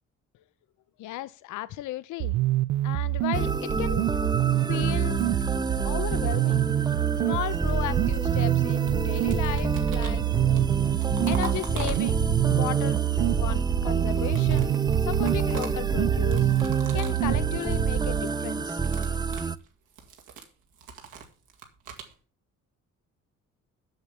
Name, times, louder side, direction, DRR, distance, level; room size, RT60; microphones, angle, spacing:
voice 1, 1.0-2.4 2.8-4.2 4.6-5.2 5.8-6.6 7.2-10.2 11.3-16.5 16.9-19.2, left 14 dB, 80° left, 0.6 m, -35 dB
sound 1, 2.2-18.2, right 15 dB, 70° right, 0.4 m, -26 dB
sound 2, 3.3-19.6, right 4 dB, 15° right, 0.5 m, -28 dB
sound 3, 4.6-6.1 7.0-8.6 8.9-12.5 13.9-17.3 17.5-17.9 18.1-18.4 18.7-22.1, right 6 dB, 90° right, 2.0 m, -44 dB
7.9 x 6.6 x 7.0 m
cardioid pair, 90°, 30 cm